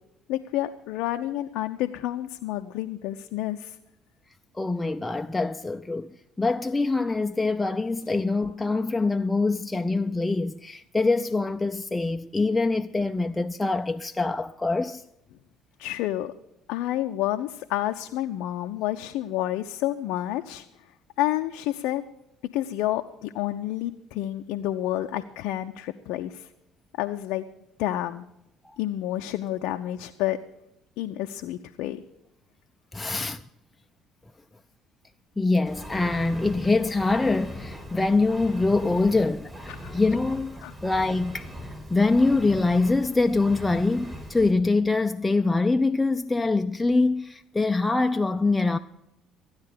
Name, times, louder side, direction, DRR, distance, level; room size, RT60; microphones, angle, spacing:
voice 1, 0.3-3.8 15.8-16.3 16.7-20.6 21.2-22.0 22.5-26.5 27.0-27.5 27.8-28.2 28.8-30.4 31.0-32.0 33.2-33.3 39.8-39.9 40.6-40.7, left 14 dB, 65° left, 0.5 m, -29 dB
voice 2, 4.5-6.1 6.4-15.0 32.9-33.4 35.4-41.5 41.9-48.8, left 3 dB, 15° left, 0.5 m, -24 dB
Engine, 35.6-44.5, equal, 20° right, 6.3 m, -40 dB
14.5 x 9.6 x 6.7 m
hypercardioid pair, 55°, 0 cm